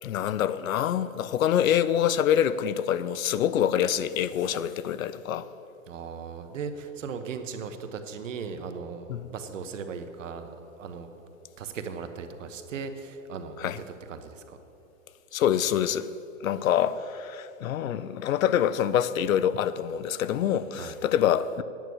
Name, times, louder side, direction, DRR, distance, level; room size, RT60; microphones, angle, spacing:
voice 1, 0.0-5.5 9.1-9.3 13.6-13.8 15.3-16.1 16.4-21.6, left 10 dB, 80° left, 0.6 m, -25 dB
voice 2, 5.9-11.1 11.6-14.6 20.7-21.0, right 5 dB, 65° right, 1.1 m, -38 dB
9.2 x 9.2 x 6.2 m
hypercardioid pair, 165°, 40 cm